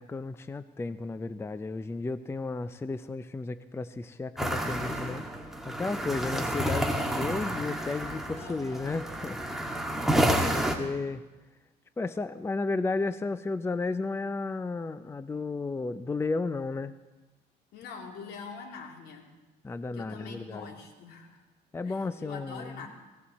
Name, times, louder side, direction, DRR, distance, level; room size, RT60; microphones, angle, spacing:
voice 1, 0.0-5.2 5.7-11.2 12.0-16.9 19.6-20.7 21.7-22.9, left 3 dB, 15° left, 12 dB, 0.5 m, -33 dB
sound 1, 4.4-10.7, right 1 dB, ahead, 1.9 m, -30 dB
voice 2, 8.3-9.0 17.7-19.3 19.9-21.4 21.8-22.9, left 5 dB, 75° left, 1 dB, 2.9 m, -45 dB
18.0 x 17.0 x 4.2 m, 1.1 s
cardioid pair, 110°, 17 cm